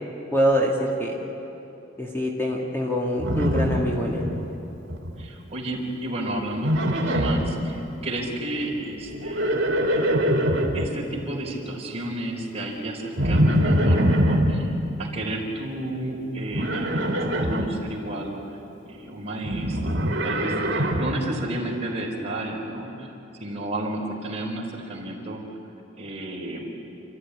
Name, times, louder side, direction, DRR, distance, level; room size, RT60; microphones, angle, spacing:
voice 1, 0.3-1.2 2.0-4.3, equal, 15° left, -2 dB, 2.2 m, -24 dB
Livestock farm animals working animals, 3.2-4.4 4.7-5.2 6.5-7.5 9.1-10.9 13.2-14.6 16.5-17.7 19.4-21.2, equal, 65° right, 2.9 m, -23 dB
voice 2, 5.2-9.5 10.7-14.7 15.0-18.3 18.8-23.1 23.4-25.4 26.0-26.8, right 1 dB, 35° right, -2 dB, 4.1 m, -32 dB
29.0 x 14.0 x 9.8 m, 3.0 s
head